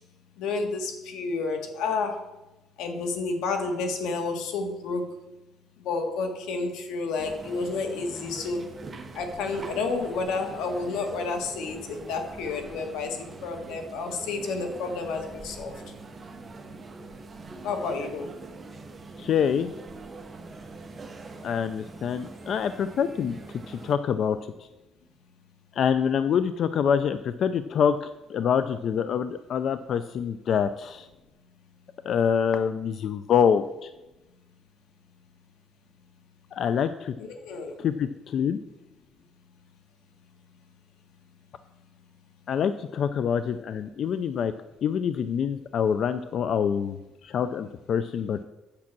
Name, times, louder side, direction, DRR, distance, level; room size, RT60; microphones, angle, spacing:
voice 1, 0.4-2.2 2.8-5.1 5.8-8.6 9.1-15.7 17.6-18.3 37.2-37.7, left 4 dB, 90° left, 5 dB, 1.7 m, -30 dB
sound 1, 7.2-23.9, right 3 dB, 25° right, 1.0 m, -43 dB
voice 2, 19.2-19.7 21.4-23.4 23.7-24.4 25.8-31.1 32.0-33.9 36.5-37.1 37.8-38.6 42.5-44.5 44.8-48.4, left 7 dB, 55° left, 12 dB, 0.4 m, -26 dB
8.7 x 7.2 x 6.0 m, 1.0 s
cardioid pair, 135°, 0 cm